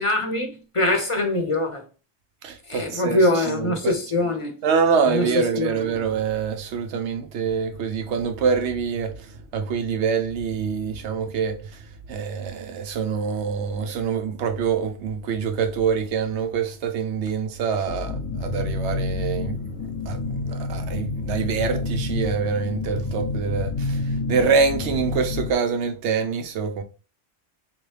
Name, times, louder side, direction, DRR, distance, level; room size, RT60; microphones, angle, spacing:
voice 1, 0.0-1.8 2.7-4.6 5.0-5.8, left 2 dB, 35° left, 0.7 m, -23 dB
voice 2, 2.4-3.2 3.5-3.9 4.6-11.6 12.1-19.6 20.1-24.0 24.3-26.8, right 6 dB, 90° right, 1.0 m, -25 dB
sound 1, 17.8-25.5, left 3 dB, 80° left, 1.2 m, -28 dB
3.6 x 3.0 x 3.2 m
omnidirectional pair, 1.1 m